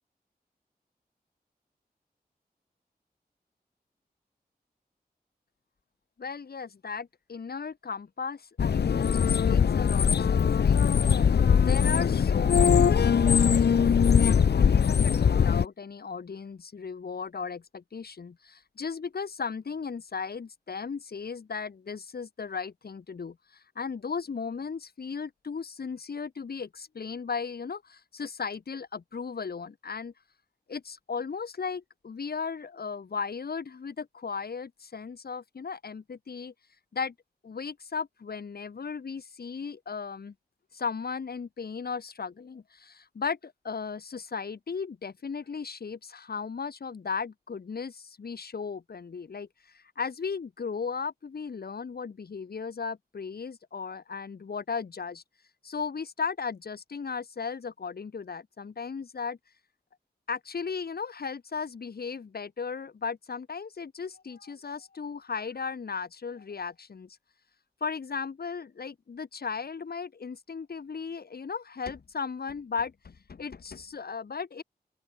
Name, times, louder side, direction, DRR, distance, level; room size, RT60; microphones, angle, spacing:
voice 1, 6.2-10.8 11.6-30.1 30.7-36.5 36.9-37.1 37.4-40.3 40.7-55.2 55.6-59.4 60.3-67.2 67.8-74.6, left 5 dB, 70° left, 1.7 m, -36 dB
sound 1, 8.6-15.6, left 7 dB, 85° left, 0.9 m, -21 dB
open air
wide cardioid pair, 95°, 17 cm